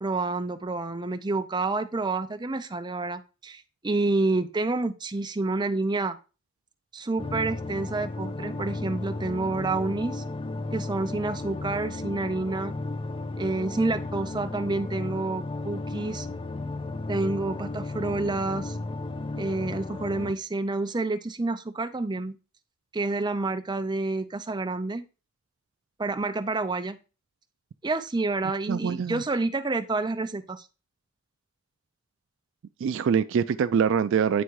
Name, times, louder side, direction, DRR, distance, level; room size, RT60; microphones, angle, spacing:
voice 1, 0.0-6.2 6.9-10.2 10.7-12.7 13.4-16.3 17.1-18.8 19.4-22.4 22.9-25.0 26.0-27.0 27.8-30.7, right 3 dB, 20° right, 0.6 m, -29 dB
sound 1, 7.2-20.3, left 2 dB, 25° left, 0.5 m, -34 dB
voice 2, 28.7-29.2 32.8-34.4, right 7 dB, 65° right, 0.3 m, -24 dB
9.3 x 3.6 x 4.7 m
head